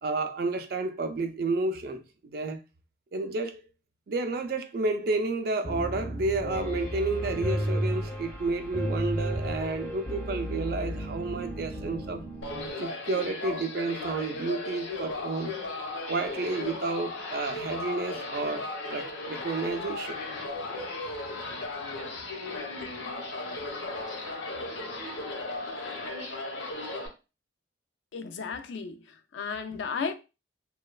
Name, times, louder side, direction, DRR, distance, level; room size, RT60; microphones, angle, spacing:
voice 1, 0.0-2.6 3.1-3.6 4.1-12.2 12.7-15.5 16.1-20.2 20.7-20.8, right 3 dB, 50° right, 0.4 m, -31 dB
Piano, 5.6-12.7, equal, 15° left, 0.5 m, -33 dB
sound 1, 12.4-27.1, left 2 dB, 90° left, 0.8 m, -36 dB
voice 2, 28.1-30.1, left 5 dB, 70° left, 0.3 m, -34 dB
3.0 x 2.2 x 2.2 m
head